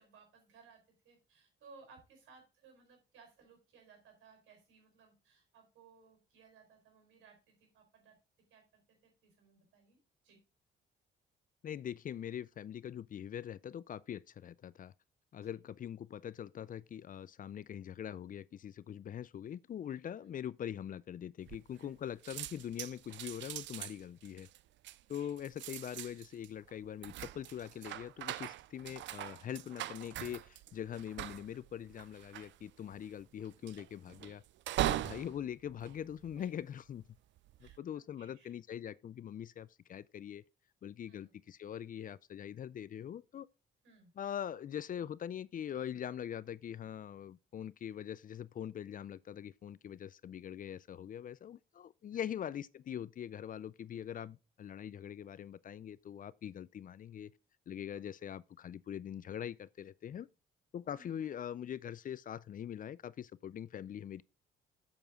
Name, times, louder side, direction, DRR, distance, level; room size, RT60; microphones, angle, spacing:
voice 1, 0.0-8.2 8.5-10.0 10.2-10.4 15.3-15.6 20.2-20.3 25.1-25.3 36.4-36.5 37.6-38.5 41.1-41.4 43.8-44.1 52.1-52.3 57.9-58.3 61.0-61.2, right 4 dB, 85° right, 4.5 m, -62 dB
voice 2, 11.6-14.9 15.3-24.5 25.1-34.4 34.8-37.0 37.6-40.4 40.8-43.5 44.2-57.3 57.7-60.3 60.7-64.2, left 9 dB, 45° left, 0.4 m, -43 dB
sound 1, 21.5-22.0 22.2-36.8 37.4-37.8, right 14 dB, 70° right, 0.4 m, -42 dB
7.9 x 7.0 x 3.6 m
cardioid pair, 90°, 20 cm